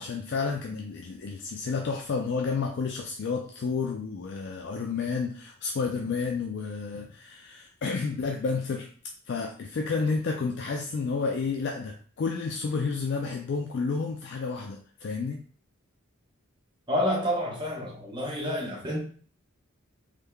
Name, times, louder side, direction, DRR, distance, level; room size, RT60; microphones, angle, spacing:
voice 1, 0.0-8.9 9.3-15.4, left 4 dB, 55° left, 0.3 m, -31 dB
voice 2, 16.9-19.0, equal, 20° right, 1.0 m, -29 dB
3.5 x 3.2 x 2.2 m
head